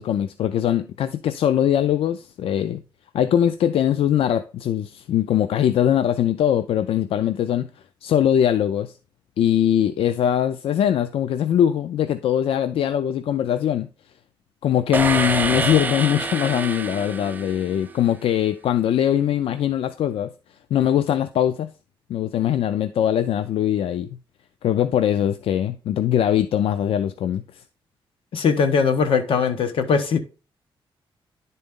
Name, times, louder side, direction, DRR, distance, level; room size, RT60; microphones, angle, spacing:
voice 1, 0.0-2.8 3.1-7.7 8.0-9.0 9.4-13.9 14.6-20.3 20.7-21.7 22.1-24.1 24.6-27.6, left 10 dB, 90° left, 0.4 m, -21 dB
sound 1, 14.9-18.1, right 4 dB, 20° right, 0.6 m, -27 dB
voice 2, 28.3-30.2, left 5 dB, 70° left, 1.1 m, -20 dB
10.5 x 4.0 x 3.6 m
wide cardioid pair, 155°, 9 cm